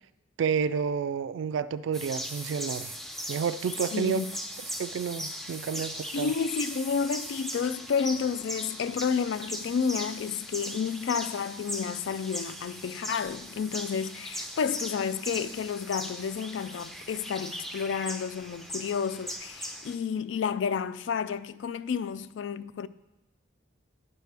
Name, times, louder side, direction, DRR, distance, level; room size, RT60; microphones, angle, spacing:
voice 1, 0.4-3.0 3.3-4.2 4.8-6.3, right 6 dB, 80° right, 0.3 m, -30 dB
sound 1, 1.9-20.0, equal, ahead, 0.5 m, -39 dB
voice 2, 3.9-4.3 5.7-5.9 6.1-22.9, left 6 dB, 70° left, 0.3 m, -31 dB
10.0 x 6.5 x 3.3 m
head